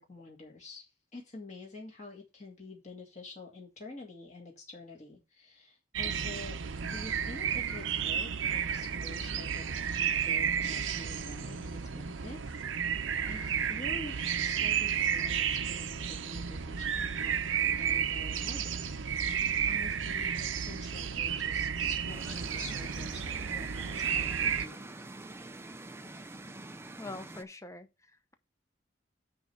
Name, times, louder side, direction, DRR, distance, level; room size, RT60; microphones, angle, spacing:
voice 1, 0.0-24.9, left 2 dB, 35° left, 2.0 m, -48 dB
sound 1, 5.9-24.6, right 7 dB, 80° right, 0.7 m, -32 dB
sound 2, 22.1-27.4, right 2 dB, 10° right, 0.4 m, -46 dB
voice 2, 27.0-28.3, left 2 dB, 15° left, 0.8 m, -44 dB
9.5 x 3.4 x 6.2 m
head